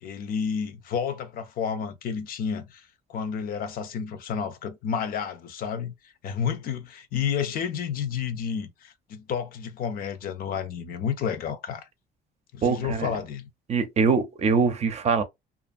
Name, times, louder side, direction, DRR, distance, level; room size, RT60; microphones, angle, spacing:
voice 1, 0.0-5.9 6.2-11.9 12.5-13.5, left 7 dB, 60° left, 0.6 m, -31 dB
voice 2, 12.6-13.1 13.7-15.2, right 5 dB, 40° right, 0.6 m, -23 dB
2.5 x 2.5 x 2.5 m
cardioid pair, 110°, 17 cm